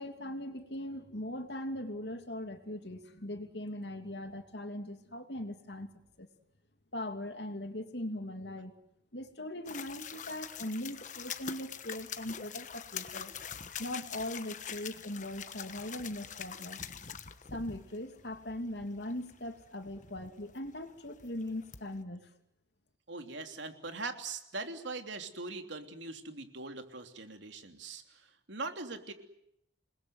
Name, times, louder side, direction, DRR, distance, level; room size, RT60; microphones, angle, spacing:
voice 1, 0.0-5.9 6.2-6.3 6.9-8.7 9.1-13.3 13.8-16.8 17.5-22.3, left 1 dB, 65° left, 6 dB, 2.8 m, -40 dB
sound 1, 9.6-22.0, left 8 dB, 45° left, 1.3 m, -45 dB
voice 2, 23.1-28.2 28.5-29.1, right 3 dB, 80° right, 5 dB, 3.2 m, -41 dB
28.5 x 21.0 x 7.9 m, 0.77 s
head